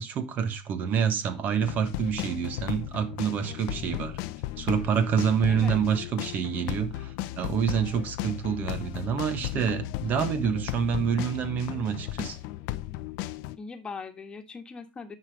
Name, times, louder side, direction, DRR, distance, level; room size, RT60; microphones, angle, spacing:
voice 1, 0.0-4.2 4.6-12.4, right 7 dB, 40° right, 1.4 m, -27 dB
sound 1, 1.6-13.6, left 15 dB, 65° left, 0.7 m, -35 dB
voice 2, 5.5-5.8 13.6-15.2, left 5 dB, 20° left, 1.5 m, -40 dB
10.0 x 5.0 x 4.9 m
supercardioid pair, 120°, 4 cm